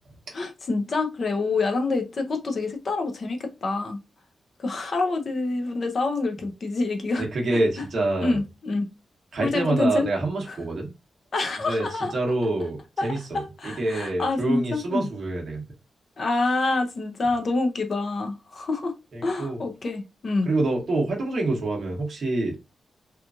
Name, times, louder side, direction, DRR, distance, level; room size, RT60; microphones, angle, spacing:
voice 1, 0.3-4.0 4.6-7.2 8.2-8.9 9.4-10.1 11.3-12.1 13.0-13.1 13.3-15.1 16.2-18.9 19.2-20.5, left 3 dB, 40° left, 0.6 m, -26 dB
voice 2, 7.2-8.4 9.3-10.9 11.7-15.6 19.1-19.6 20.5-22.6, right 2 dB, 45° right, 0.9 m, -26 dB
2.9 x 2.4 x 2.4 m
wide cardioid pair, 180°, 0 cm